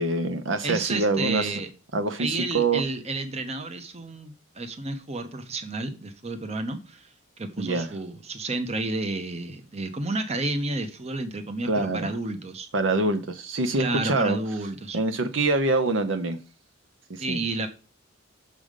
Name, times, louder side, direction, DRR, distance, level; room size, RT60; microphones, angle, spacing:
voice 1, 0.0-1.5 1.9-2.8 7.6-7.9 11.7-12.1 12.7-14.4 14.9-16.4 17.1-17.4, right 2 dB, 65° right, 0.7 m, -25 dB
voice 2, 0.6-1.7 2.2-7.1 7.4-12.7 13.8-15.0 17.2-17.7, right 2 dB, 30° right, 0.8 m, -31 dB
6.5 x 5.5 x 5.0 m
head